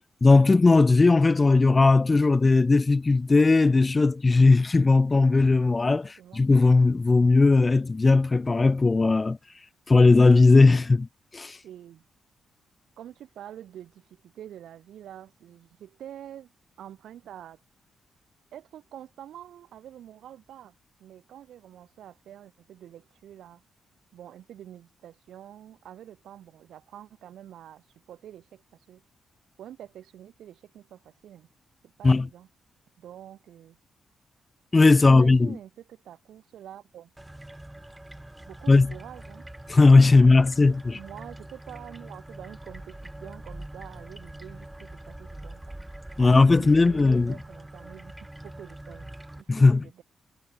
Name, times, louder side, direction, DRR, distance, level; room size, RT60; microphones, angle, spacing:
voice 1, 0.2-9.4 9.9-11.1 11.3-11.6 32.0-32.3 34.7-35.5 38.7-38.9 39.7-41.0 46.2-47.3 49.5-49.8, left 3 dB, 30° left, 0.3 m, -18 dB
voice 2, 5.9-6.4 11.6-12.0 13.0-16.5 16.8-17.6 18.5-20.7 21.0-23.6 24.1-29.0 29.6-31.5 31.8-32.5 33.0-33.8 35.0-37.1 38.5-39.4 39.7-39.8 40.1-45.8 46.2-48.1 48.4-49.1 49.4-50.0, right 11 dB, 85° right, 2.8 m, -46 dB
sound 1, 37.2-49.4, right 1 dB, 10° right, 1.3 m, -43 dB
cardioid pair, 80°, 0 cm